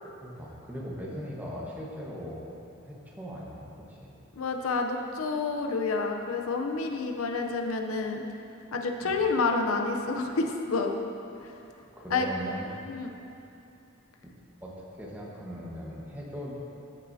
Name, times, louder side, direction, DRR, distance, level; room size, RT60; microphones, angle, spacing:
voice 1, 0.0-2.5 2.8-4.1 9.0-9.2 11.9-12.8 14.6-16.5, equal, 10° right, -4 dB, 1.2 m, -39 dB
voice 2, 4.4-8.2 8.7-10.9 12.1-12.3 12.9-13.1, left 4 dB, 90° left, 3 dB, 0.7 m, -29 dB
14.5 x 6.4 x 2.7 m, 2.8 s
head